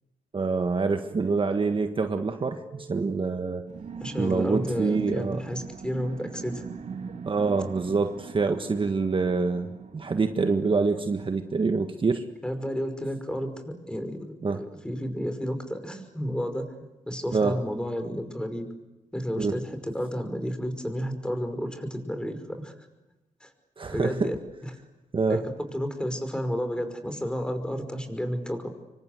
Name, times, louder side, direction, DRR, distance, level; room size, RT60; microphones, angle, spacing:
voice 1, 0.3-3.7 4.2-5.4 7.2-12.3 14.4-14.6 17.3-17.6 19.4-19.6 23.8-24.3 25.1-25.4, right 4 dB, 40° right, 6 dB, 1.6 m, -26 dB
sound 1, 3.7-11.8, right 6 dB, 60° right, 2.5 m, -41 dB
voice 2, 4.0-6.7 12.4-16.7 17.1-18.7 19.1-22.9 23.4-23.5 23.9-24.4 24.6-24.7 25.3-28.7, equal, 5° left, 8 dB, 5.4 m, -31 dB
27.0 x 24.0 x 8.2 m, 1.1 s
cardioid pair, 90°, 14 cm